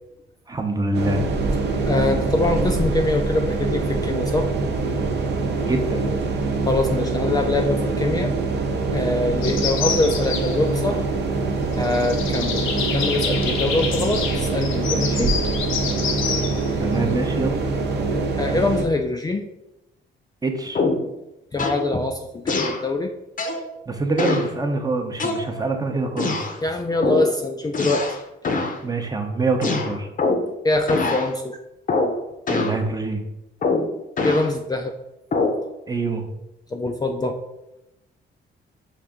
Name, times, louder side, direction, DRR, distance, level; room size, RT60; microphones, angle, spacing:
voice 1, 0.5-1.2 5.6-6.1 16.8-17.6 20.4-20.8 23.9-26.4 28.8-30.1 32.5-33.2 35.9-36.2, right 3 dB, 20° right, 4 dB, 0.7 m, -25 dB
sound 1, 0.9-18.9, right 3 dB, 60° right, 0.7 m, -24 dB
voice 2, 1.8-4.5 6.7-8.3 8.9-11.0 11.8-15.3 18.4-19.5 21.5-23.1 26.6-28.0 30.6-31.6 34.2-34.9 36.7-37.4, left 2 dB, 20° left, 2 dB, 0.4 m, -23 dB
sound 2, 9.4-18.2, left 6 dB, 75° left, 0.7 m, -29 dB
sound 3, 20.7-21.1 21.6-21.9 22.5-22.8 23.4-23.7 24.2-24.5 25.2-25.7 26.2-26.6 27.0-27.3 27.7-28.2 28.4-28.8 29.6-30.5 30.9-31.3 31.9-32.2 32.5-32.8 33.6-34.5 35.3-35.6, left 3 dB, 45° left, 0.7 m, -23 dB
5.5 x 2.6 x 3.6 m, 0.90 s
cardioid pair, 90°, 20 cm